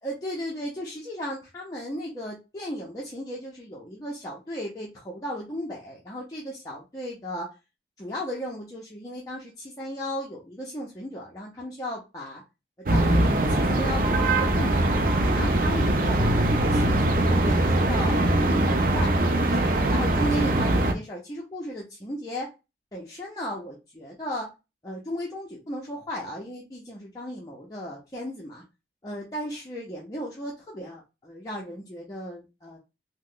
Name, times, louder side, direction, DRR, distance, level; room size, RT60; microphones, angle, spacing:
voice 1, 0.0-7.5 8.0-12.4 12.9-15.1 15.3-19.1 19.5-22.5 22.9-24.5 24.8-28.6 29.0-32.8, equal, 20° left, -4 dB, 0.6 m, -35 dB
sound 1, 12.9-20.9, right 1 dB, 50° right, 0.5 m, -22 dB
2.9 x 2.1 x 3.7 m, 0.27 s
head